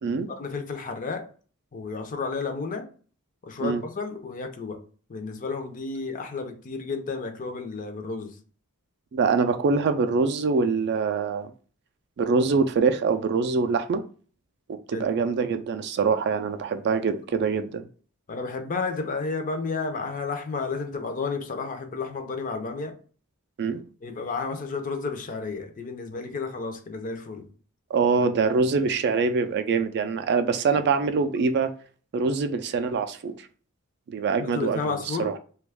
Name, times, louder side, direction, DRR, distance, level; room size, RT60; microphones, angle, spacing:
voice 1, 0.3-1.3 1.7-2.9 3.4-4.8 5.1-8.4 14.9-15.1 18.3-23.0 24.0-27.5 34.4-35.3, left 4 dB, 35° left, 0.5 m, -32 dB
voice 2, 9.1-11.5 12.2-14.0 14.7-17.9 23.6-23.8 27.9-31.7 32.1-33.3 34.1-35.4, right 4 dB, 50° right, 0.3 m, -24 dB
3.0 x 2.3 x 3.4 m
head